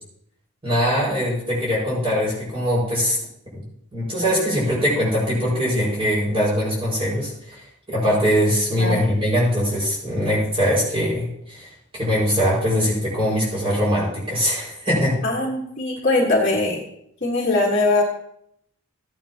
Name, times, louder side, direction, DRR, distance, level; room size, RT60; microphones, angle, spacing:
voice 1, 0.6-3.2 3.5-3.6 3.9-15.2, equal, 25° right, -6 dB, 5.3 m, -22 dB
voice 2, 8.8-9.1 15.2-16.8 17.2-18.0, left 2 dB, 40° left, -3 dB, 1.6 m, -21 dB
15.5 x 9.1 x 2.9 m, 0.73 s
head